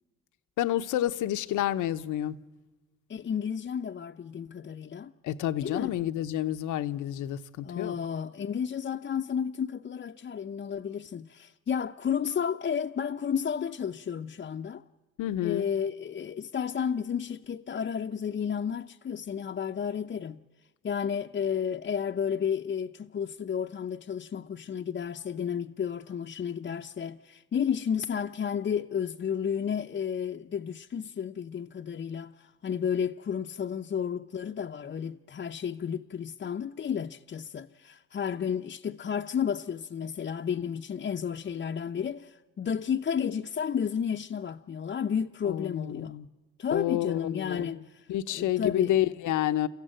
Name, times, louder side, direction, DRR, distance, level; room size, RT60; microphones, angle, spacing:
voice 1, 0.6-2.4 5.2-7.9 15.2-15.7 45.5-46.3 46.7-47.8 48.1-49.7, left 12 dB, 85° left, 0.9 m, -29 dB
voice 2, 3.1-5.1 5.6-5.9 7.6-14.8 15.4-20.4 20.8-46.2 46.6-49.0, left 7 dB, 35° left, 0.7 m, -32 dB
29.5 x 14.5 x 9.0 m
cardioid pair, 90°, 30 cm